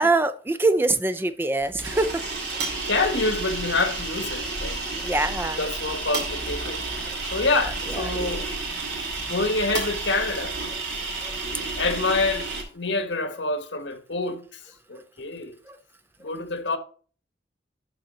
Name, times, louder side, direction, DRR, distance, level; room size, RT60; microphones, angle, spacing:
voice 1, 0.0-2.2 4.9-5.6 8.2-8.3 11.2-11.4 15.7-15.8, right 2 dB, 10° right, 0.4 m, -24 dB
sound 1, 1.6-12.6, right 3 dB, 65° right, 2.6 m, -31 dB
voice 2, 2.7-4.8 5.6-6.8 7.3-8.5 9.3-10.5 11.8-14.6 14.9-15.6 16.2-16.8, left 3 dB, 80° left, 1.5 m, -27 dB
12.0 x 4.1 x 3.9 m
head